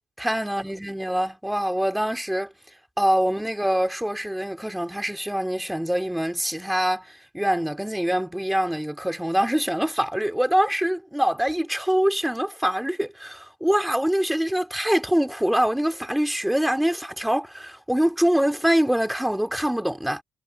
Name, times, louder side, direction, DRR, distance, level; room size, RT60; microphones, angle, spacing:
voice 1, 0.2-2.5 3.0-20.2, equal, 5° right, 3.2 m, -24 dB
cardioid pair, 90°, 0 cm